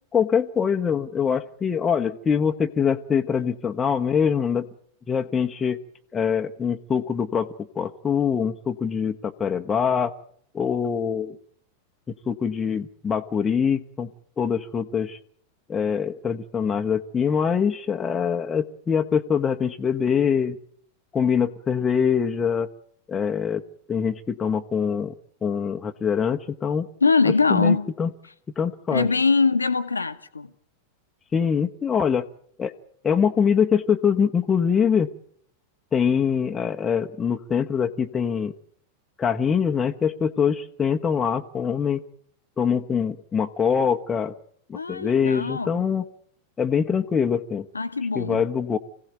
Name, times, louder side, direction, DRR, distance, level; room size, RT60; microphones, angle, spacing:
voice 1, 0.1-4.7 5.1-5.8 6.1-10.1 10.5-11.4 12.3-14.1 14.4-15.2 15.7-20.6 21.1-22.7 23.1-23.6 23.9-25.1 25.4-26.9 27.5-28.1 28.6-29.1 31.3-32.3 32.6-32.7 33.0-35.1 35.9-38.6 39.2-42.0 42.6-44.3 44.7-46.1 46.6-47.7 48.1-48.8, left 7 dB, 20° left, 1.1 m, -24 dB
voice 2, 27.0-27.9 28.9-30.5 44.7-45.9 47.7-48.5, left 4 dB, 80° left, 1.2 m, -22 dB
25.5 x 16.5 x 9.2 m
figure-of-eight pair, 90°, 0 cm